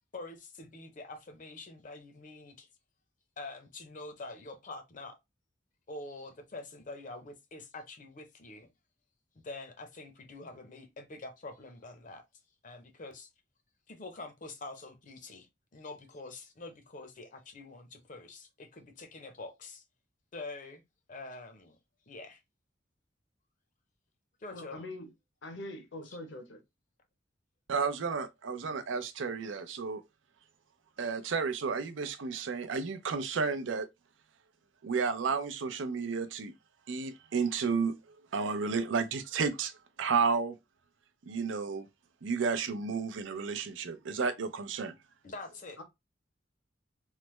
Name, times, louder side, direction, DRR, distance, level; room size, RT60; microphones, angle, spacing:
voice 1, 0.1-2.7 3.4-5.2 5.9-8.7 9.4-12.2 12.6-13.3 13.9-15.5 15.7-19.8 20.3-20.8 21.1-21.8 22.1-22.4 24.4-24.8 26.1-26.2 45.2-45.8, left 2 dB, 45° left, 0.6 m, -45 dB
voice 2, 24.5-25.1 25.4-26.6 45.8-45.9, left 1 dB, 75° left, 0.8 m, -43 dB
voice 3, 27.7-30.0 31.0-33.9 34.8-36.5 36.9-38.0 38.3-39.7 40.0-40.6 41.3-41.9 42.2-44.9, right 5 dB, 85° right, 0.5 m, -32 dB
3.2 x 2.0 x 3.1 m
head